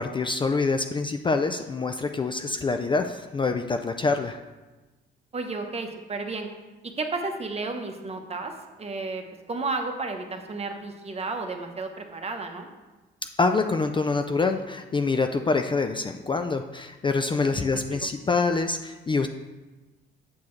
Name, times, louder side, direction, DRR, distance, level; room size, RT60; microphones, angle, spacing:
voice 1, 0.0-4.4 13.4-19.3, left 3 dB, 25° left, 6 dB, 0.4 m, -25 dB
voice 2, 5.3-6.5 7.0-8.5 8.8-12.7 17.5-18.1, right 3 dB, 30° right, 4 dB, 0.9 m, -32 dB
7.1 x 6.8 x 3.2 m, 1.2 s
cardioid pair, 90°, 20 cm